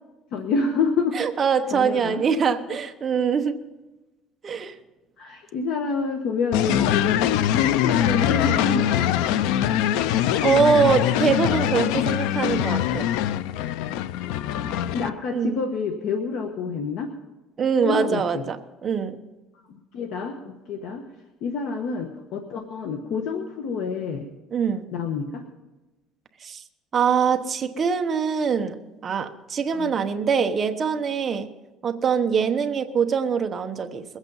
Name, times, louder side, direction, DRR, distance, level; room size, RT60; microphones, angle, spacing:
voice 1, 0.3-1.3 1.7-2.2 2.7-2.8 5.2-7.2 7.5-9.1 14.5-17.1 17.8-18.4 19.9-21.0 21.4-24.3 24.9-25.4 29.7-29.9, left 4 dB, 60° left, 5 dB, 1.2 m, -28 dB
voice 2, 1.1-3.6 4.4-4.7 6.7-6.9 10.4-13.1 15.3-15.6 17.6-19.2 24.5-24.9 26.4-26.6 26.9-28.8 29.0-31.5 31.8-34.0, right 6 dB, 25° right, 6 dB, 0.9 m, -23 dB
sound 1, 6.5-15.1, left 11 dB, 90° left, 0.5 m, -23 dB
21.5 x 8.2 x 5.5 m, 1.1 s
cardioid pair, 155°, 0 cm